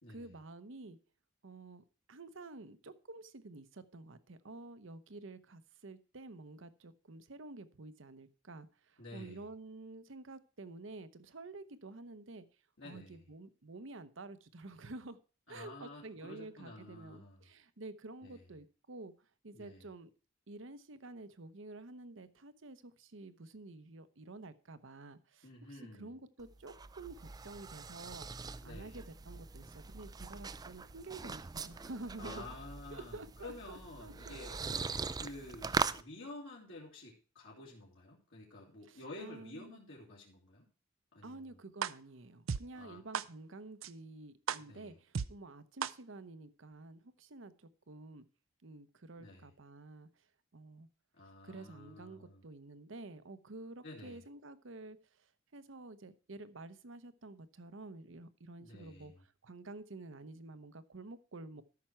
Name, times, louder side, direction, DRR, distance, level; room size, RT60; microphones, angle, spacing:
voice 1, 0.1-1.0 1.4-12.5 12.8-15.2 15.5-20.1 20.5-32.5 32.9-35.0 38.9-39.8 41.2-48.2 48.6-50.3 50.5-50.9 51.4-61.6, right 2 dB, 70° right, 13 dB, 0.9 m, -50 dB
voice 2, 9.0-9.4 12.8-13.2 15.5-17.4 18.2-18.4 19.5-19.8 25.4-26.1 28.6-29.0 32.2-34.5 35.2-40.7 41.1-41.6 42.7-43.0 44.6-45.0 49.2-49.5 51.2-52.4 53.8-54.2 58.6-59.2, left 2 dB, 70° left, -4 dB, 2.6 m, -50 dB
sound 1, 26.4-36.0, right 4 dB, 20° right, 0.4 m, -41 dB
sound 2, 41.8-41.9 42.5-42.6 43.1-43.2 43.8-43.9 44.5-44.6 45.1-45.3 45.8-45.9, right 7 dB, 90° right, 0.5 m, -33 dB
13.5 x 6.0 x 4.5 m, 0.37 s
head